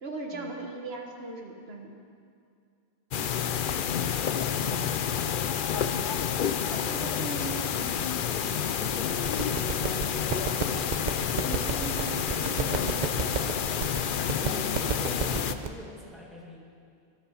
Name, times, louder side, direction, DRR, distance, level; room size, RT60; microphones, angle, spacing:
voice 1, 0.0-1.9 6.6-8.1 11.4-13.0, right 2 dB, 75° right, 1 dB, 1.7 m, -38 dB
sound 1, 3.1-15.5, left 8 dB, 60° left, 0.7 m, -29 dB
voice 2, 8.1-10.3 14.4-16.6, left 1 dB, ahead, -3 dB, 2.3 m, -47 dB
sound 2, 9.2-15.7, right 5 dB, 50° right, 0.8 m, -33 dB
24.5 x 8.3 x 5.7 m, 2.3 s
omnidirectional pair, 1.1 m